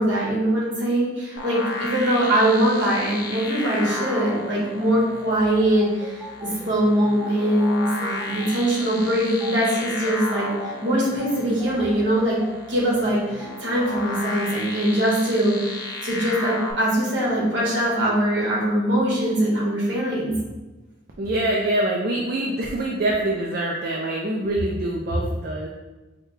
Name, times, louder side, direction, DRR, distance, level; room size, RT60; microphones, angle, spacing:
voice 1, 0.0-12.4 12.7-20.4, right 1 dB, 65° right, -5 dB, 1.3 m, -22 dB
sound 1, 1.4-16.7, left 2 dB, 50° left, 0.6 m, -34 dB
sound 2, 3.6-13.5, left 1 dB, 5° right, 0.7 m, -40 dB
voice 2, 21.2-25.7, right 1 dB, 50° right, -1 dB, 0.4 m, -25 dB
4.8 x 2.2 x 3.2 m, 1.1 s
head